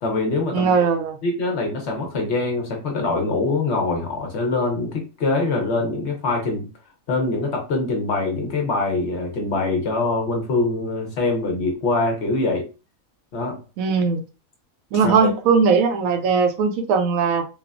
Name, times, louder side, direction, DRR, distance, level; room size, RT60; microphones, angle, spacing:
voice 1, 0.0-0.7 1.2-6.7 7.1-12.7 13.3-13.6 15.0-15.3, left 3 dB, 60° left, 2 dB, 0.9 m, -23 dB
voice 2, 0.5-1.2 13.8-14.2 14.9-17.4, right 5 dB, 80° right, 5 dB, 1.0 m, -19 dB
3.2 x 2.0 x 2.3 m, 0.33 s
omnidirectional pair, 1.4 m